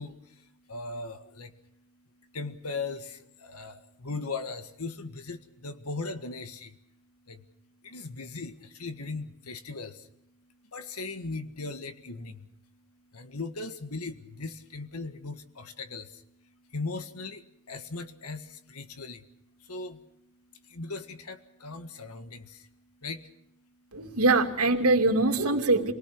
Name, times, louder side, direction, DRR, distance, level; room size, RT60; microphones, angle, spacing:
voice 1, 0.0-6.8 7.3-7.5 7.8-24.2, left 3 dB, 90° left, 9 dB, 1.7 m, -39 dB
voice 2, 23.9-25.9, right 2 dB, 80° right, 4 dB, 2.8 m, -23 dB
29.0 x 19.5 x 6.1 m, 0.78 s
head